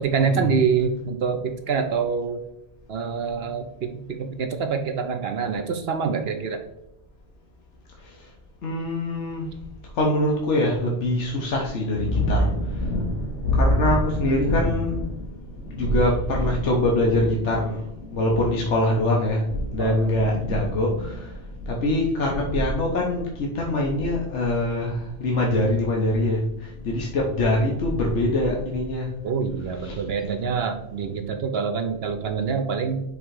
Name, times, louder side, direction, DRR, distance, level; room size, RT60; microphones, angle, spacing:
voice 1, 0.0-2.4 2.9-6.6 19.8-20.1 29.2-33.0, right 5 dB, 65° right, 6 dB, 0.9 m, -26 dB
voice 2, 8.6-9.6 9.9-29.1 29.8-30.0, left 1 dB, 80° left, -1 dB, 1.3 m, -23 dB
5.4 x 3.8 x 4.7 m, 0.84 s
omnidirectional pair, 1.2 m